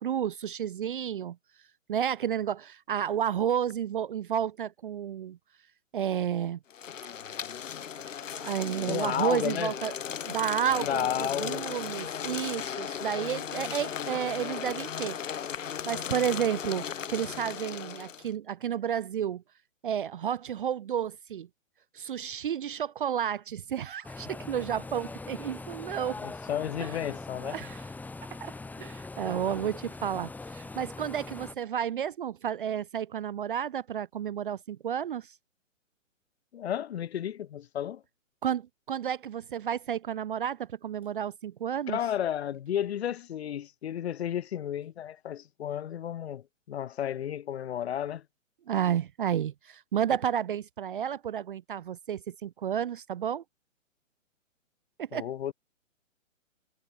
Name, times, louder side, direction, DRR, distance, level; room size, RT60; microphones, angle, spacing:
voice 1, 0.0-1.4 1.9-5.4 5.9-6.6 8.4-9.9 10.3-15.2 15.9-19.4 19.8-21.5 21.9-26.2 26.8-26.9 27.4-27.8 28.4-28.5 28.8-35.3 38.4-42.0 48.7-53.4 55.0-55.3, right 9 dB, 40° right, 0.5 m, -31 dB
sound 1, 6.7-18.3, left 8 dB, 70° left, 1.5 m, -36 dB
voice 2, 8.9-9.7 10.8-11.6 26.2-27.6 36.5-38.0 41.9-48.2 55.1-55.5, left 10 dB, 50° left, 1.7 m, -32 dB
sound 2, 24.0-31.5, left 3 dB, 5° left, 2.8 m, -42 dB
hypercardioid pair, 140°, 40 cm